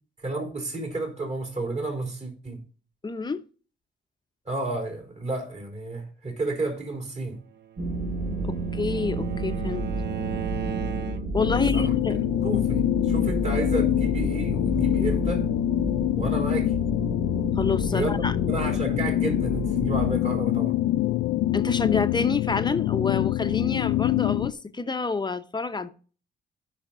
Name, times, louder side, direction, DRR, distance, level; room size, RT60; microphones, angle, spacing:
voice 1, 0.2-2.6 4.5-7.4 11.7-15.4 16.2-16.7 17.9-18.1 18.5-20.8, right 2 dB, 35° right, 3.6 m, -31 dB
voice 2, 3.0-3.4 8.4-9.9 11.3-12.2 17.6-18.4 21.5-25.9, left 4 dB, 20° left, 0.8 m, -28 dB
Bowed string instrument, 7.6-11.5, right 9 dB, 60° right, 0.7 m, -36 dB
sound 1, 7.8-20.1, right 1 dB, 85° right, 5.0 m, -31 dB
sound 2, 11.4-24.5, left 15 dB, 85° left, 0.4 m, -25 dB
15.0 x 5.8 x 2.5 m
cardioid pair, 90°, 20 cm